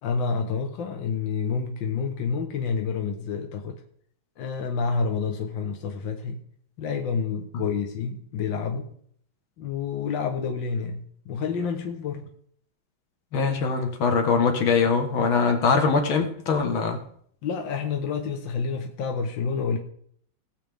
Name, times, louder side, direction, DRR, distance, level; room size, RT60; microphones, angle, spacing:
voice 1, 0.0-3.8 4.4-6.4 6.8-8.9 9.6-12.3 17.4-19.8, left 5 dB, 70° left, 1.8 m, -29 dB
voice 2, 13.3-17.0, left 5 dB, 85° left, 2.2 m, -22 dB
18.0 x 7.5 x 3.5 m
omnidirectional pair, 2.2 m